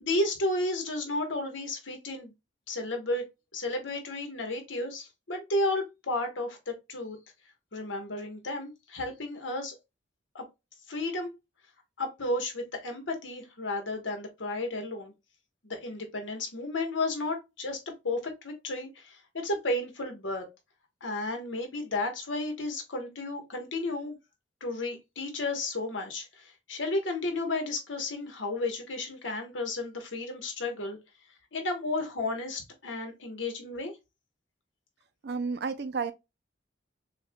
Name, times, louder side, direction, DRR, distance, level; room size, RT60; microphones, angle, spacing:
voice 1, 0.0-2.3 2.7-3.2 3.5-7.2 7.7-9.8 10.3-10.4 10.9-11.3 12.0-15.1 15.6-20.5 21.0-24.2 24.6-31.0 31.5-33.9, left 2 dB, 85° left, 1.3 m, -33 dB
voice 2, 35.2-36.1, right 5 dB, 60° right, 0.5 m, -31 dB
6.3 x 2.4 x 2.2 m
head